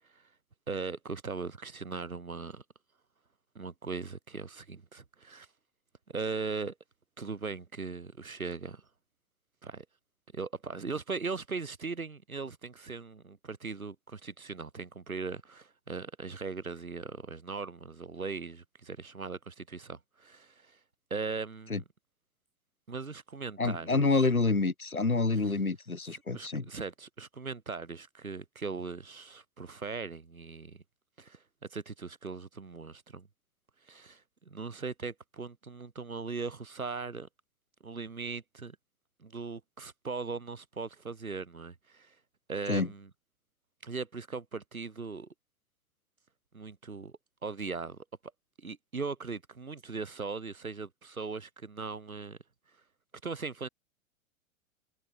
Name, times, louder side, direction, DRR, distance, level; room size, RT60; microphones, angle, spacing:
voice 1, 0.7-2.6 3.5-5.5 6.1-6.7 7.2-8.9 9.6-9.9 10.3-20.8 21.1-21.8 22.9-24.3 25.4-25.5 26.1-30.8 31.2-33.3 33.9-37.3 37.8-38.8 39.2-42.2 42.5-43.1 43.8-45.3 46.5-48.0 48.6-52.4 53.2-53.7, right 4 dB, 75° right, 5.9 m, -39 dB
voice 2, 23.6-26.7 42.7-42.9, left 3 dB, 80° left, 3.7 m, -27 dB
figure-of-eight pair, 100°, 42 cm